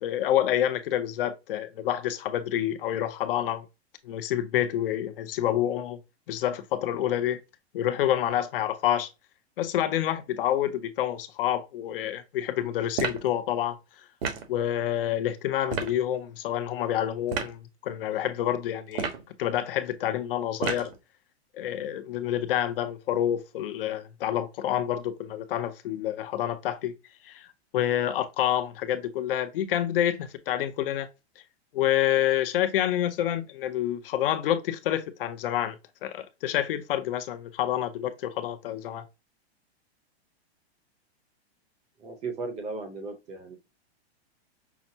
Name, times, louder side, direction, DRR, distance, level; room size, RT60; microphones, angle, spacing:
voice 1, 0.0-3.7 4.0-6.0 6.3-7.4 7.7-9.1 9.6-13.8 14.5-19.1 19.4-20.9 21.5-26.9 27.2-27.5 27.7-31.1 31.7-35.8 36.0-39.0, left 11 dB, 55° left, 0.6 m, -28 dB
sound 1, 13.0-13.3 14.2-14.5 15.7-16.0 17.3-17.5 18.9-19.3 20.6-21.0, right 6 dB, 60° right, 1.2 m, -30 dB
voice 2, 42.0-43.6, right 3 dB, 20° right, 0.7 m, -36 dB
5.8 x 2.0 x 2.7 m
hypercardioid pair, 155°, 33 cm